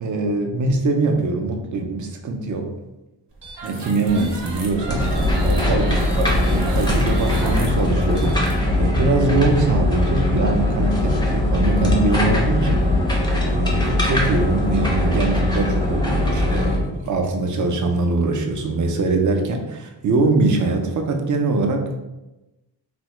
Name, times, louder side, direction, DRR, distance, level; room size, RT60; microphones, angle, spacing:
voice 1, 0.0-2.7 3.6-5.1 5.4-12.9 13.5-22.0, right 3 dB, 50° right, 3 dB, 0.4 m, -22 dB
sound 1, 3.4-9.3, right 2 dB, 75° right, 0.8 m, -32 dB
sound 2, 4.9-16.8, left 1 dB, 10° left, 0.5 m, -20 dB
sound 3, 8.9-16.7 17.1-18.8, left 2 dB, 70° left, 0.9 m, -38 dB
3.3 x 2.0 x 3.0 m, 1.0 s
wide cardioid pair, 115°, 42 cm